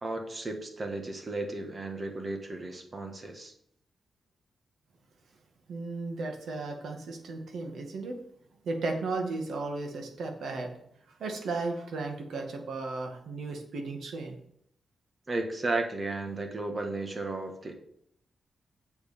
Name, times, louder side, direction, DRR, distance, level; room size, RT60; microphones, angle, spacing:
voice 1, 0.0-3.5 15.3-17.7, right 2 dB, 30° right, 4 dB, 1.6 m, -34 dB
voice 2, 5.7-8.2 8.6-10.7 11.2-14.4, right 3 dB, 75° right, 3 dB, 1.9 m, -35 dB
8.0 x 7.1 x 5.2 m, 0.70 s
wide cardioid pair, 145°, 0 cm